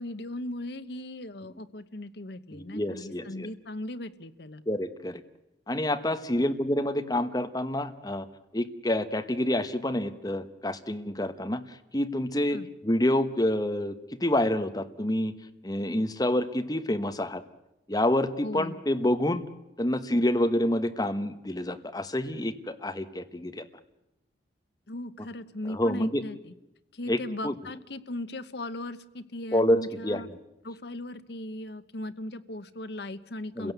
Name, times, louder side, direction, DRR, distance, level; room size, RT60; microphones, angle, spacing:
voice 1, 0.0-4.6 6.4-6.5 12.5-12.7 18.4-18.8 24.9-26.5 26.9-30.3 30.6-33.7, left 1 dB, 60° left, 11 dB, 1.0 m, -38 dB
voice 2, 2.5-3.5 4.7-5.2 5.7-8.3 8.5-12.6 12.8-15.3 15.6-17.4 17.9-19.4 19.8-23.6 25.7-26.2 27.1-27.5 29.5-30.2 33.6-33.7, left 1 dB, 20° left, 9 dB, 1.2 m, -28 dB
29.5 x 16.5 x 8.1 m, 0.91 s
head